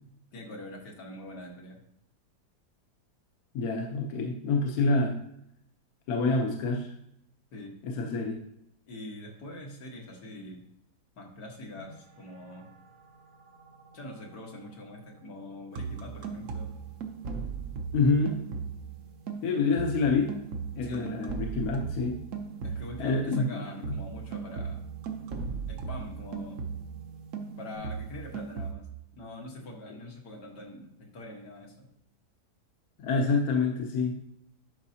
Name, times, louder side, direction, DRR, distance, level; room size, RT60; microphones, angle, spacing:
voice 1, 0.3-1.8 7.5-7.8 8.9-10.6 11.2-12.7 13.9-16.7 20.8-21.2 22.6-24.8 25.7-26.7 27.6-28.9 29.1-31.9, left 1 dB, 80° left, -1 dB, 2.1 m, -43 dB
voice 2, 3.5-5.2 6.1-6.9 7.8-8.4 17.9-18.4 19.4-20.3 20.7-22.2 23.0-23.6 23.9-24.0 33.0-34.2, left 3 dB, 65° left, 1 dB, 1.3 m, -27 dB
sound 1, 11.8-27.8, right 4 dB, 80° right, 2.4 m, -51 dB
sound 2, 15.8-19.0 19.3-23.1 23.3-27.0 27.3-28.7, right 5 dB, 55° right, 1.1 m, -37 dB
11.0 x 5.2 x 2.8 m, 0.76 s
omnidirectional pair, 1.8 m